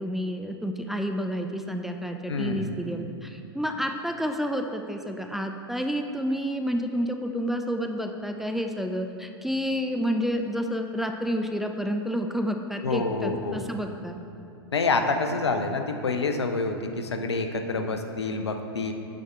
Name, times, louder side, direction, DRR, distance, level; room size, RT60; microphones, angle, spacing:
voice 1, 0.0-14.2, equal, ahead, 4 dB, 0.4 m, -29 dB
voice 2, 2.3-2.8 12.8-13.6 14.7-18.9, left 3 dB, 85° left, 6 dB, 0.6 m, -27 dB
7.5 x 4.9 x 4.4 m, 2.6 s
hypercardioid pair, 100°, 14 cm